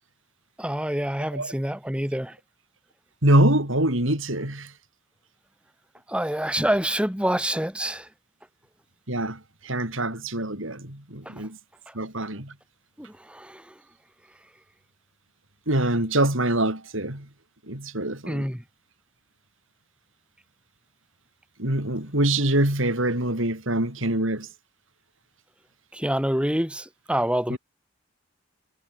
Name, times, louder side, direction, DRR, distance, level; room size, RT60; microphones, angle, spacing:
voice 1, 0.6-2.4 6.1-8.1 11.2-11.3 11.9-12.0 13.0-13.7 18.3-18.6 25.9-27.6, right 1 dB, 5° right, 3.2 m, -27 dB
voice 2, 3.2-4.7 9.1-11.6 11.9-12.5 15.7-17.3 17.7-18.5 21.6-24.5 27.5-27.6, right 1 dB, 70° right, 6.8 m, -24 dB
head